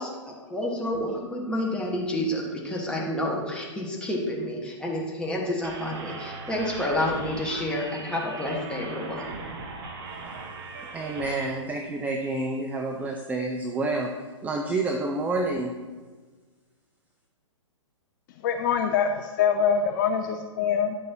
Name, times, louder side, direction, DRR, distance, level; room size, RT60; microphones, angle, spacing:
voice 1, 0.0-9.3, left 1 dB, 5° left, -2 dB, 1.4 m, -29 dB
sound 1, 5.6-11.5, right 3 dB, 45° right, 1.2 m, -39 dB
voice 2, 10.9-14.1 14.4-15.7, right 2 dB, 10° right, 2 dB, 0.4 m, -28 dB
voice 3, 18.4-20.9, left 7 dB, 40° left, 5 dB, 0.5 m, -24 dB
9.9 x 6.5 x 2.8 m, 1.4 s
figure-of-eight pair, 120°, 16 cm